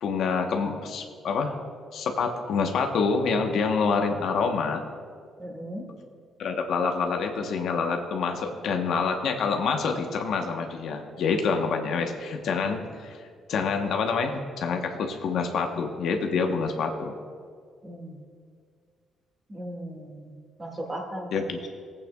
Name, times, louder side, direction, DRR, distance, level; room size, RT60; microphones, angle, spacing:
voice 1, 0.0-1.5 1.9-4.8 6.4-17.1 21.3-21.6, left 5 dB, 75° left, 4 dB, 1.0 m, -27 dB
voice 2, 5.4-5.8 17.8-18.2 19.5-20.3 20.6-21.5, right 1 dB, 25° right, 1 dB, 1.9 m, -37 dB
17.5 x 8.6 x 2.3 m, 2.1 s
cardioid pair, 90°, 0 cm